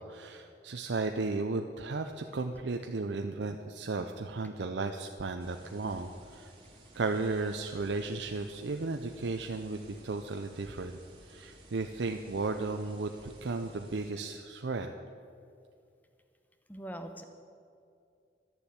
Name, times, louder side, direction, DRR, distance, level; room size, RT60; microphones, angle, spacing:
voice 1, 0.0-6.5 7.0-11.0 11.3-14.9, right 3 dB, 85° right, 5 dB, 0.6 m, -35 dB
sound 1, 5.4-14.1, right 1 dB, 30° right, 2.4 m, -56 dB
voice 2, 16.7-17.2, right 1 dB, 10° left, 6 dB, 0.9 m, -41 dB
12.0 x 7.1 x 9.5 m, 2.4 s
head